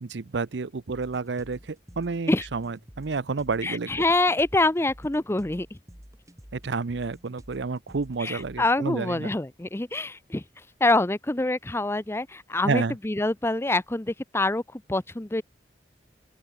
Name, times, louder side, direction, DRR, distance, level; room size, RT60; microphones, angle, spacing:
voice 1, 0.0-3.9 6.5-9.3 12.6-13.0, right 4 dB, 75° right, 0.6 m, -30 dB
sound 1, 0.9-8.9, equal, 20° right, 5.4 m, -49 dB
voice 2, 3.6-5.7 8.2-10.4 10.8-15.4, left 2 dB, 15° left, 0.7 m, -25 dB
open air
head